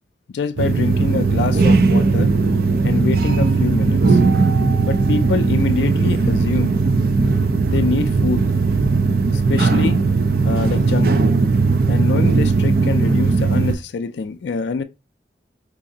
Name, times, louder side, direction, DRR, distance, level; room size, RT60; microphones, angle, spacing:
voice 1, 0.3-2.3 2.8-4.2 4.9-6.8 7.7-8.4 9.3-10.0 10.4-11.4 11.9-14.8, left 4 dB, 70° left, 0.3 m, -25 dB
sound 1, 0.6-13.8, right 4 dB, 55° right, 0.5 m, -17 dB
4.8 x 2.6 x 2.6 m
head